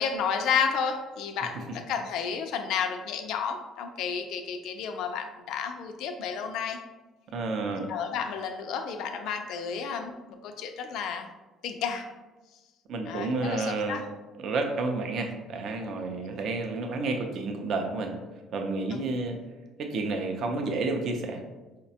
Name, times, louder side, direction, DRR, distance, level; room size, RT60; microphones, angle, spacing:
voice 1, 0.0-6.8 7.9-11.3 11.6-12.1 13.1-14.0 16.1-16.3, left 6 dB, 75° left, 5 dB, 0.3 m, -31 dB
voice 2, 7.3-7.9 12.9-14.0 14.4-18.2 18.5-19.4 19.8-21.4, right 3 dB, 55° right, 4 dB, 0.4 m, -30 dB
4.7 x 2.1 x 2.7 m, 1.2 s
cardioid pair, 140°, 0 cm